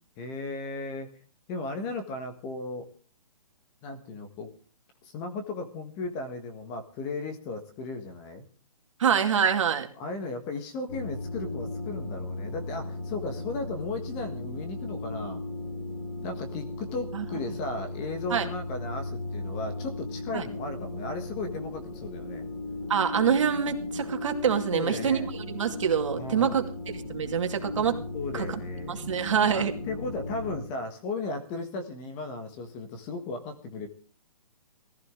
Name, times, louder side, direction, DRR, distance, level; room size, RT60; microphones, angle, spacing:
voice 1, 0.2-1.1 1.5-2.9 3.8-4.5 5.0-8.4 10.0-15.4 16.2-22.5 24.7-25.3 26.1-26.6 28.1-29.0 29.5-33.9, left 3 dB, 15° left, 6 dB, 1.4 m, -36 dB
voice 2, 9.0-9.9 17.1-17.2 18.3-18.4 20.3-20.4 22.9-28.0 28.3-28.6 28.9-29.7, right 7 dB, 55° right, 5 dB, 2.4 m, -26 dB
sound 1, 10.9-30.6, left 2 dB, 80° left, 4.9 m, -36 dB
19.0 x 14.5 x 3.8 m, 0.39 s
hypercardioid pair, 170°, 19 cm